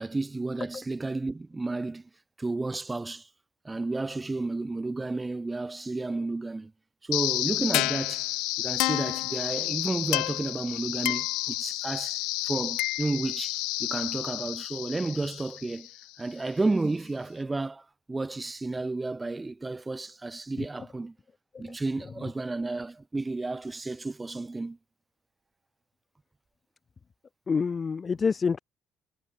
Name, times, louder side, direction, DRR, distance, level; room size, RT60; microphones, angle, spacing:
voice 1, 0.0-2.1 2.4-3.3 3.6-6.7 7.0-8.3 8.6-15.9 16.2-21.1 21.6-24.8, right 3 dB, 20° right, 4.3 m, -32 dB
sound 1, 7.1-16.1, left 22 dB, 90° left, 1.1 m, -30 dB
voice 2, 27.5-28.6, left 5 dB, 35° left, 7.5 m, -28 dB
cardioid pair, 90°, 0 cm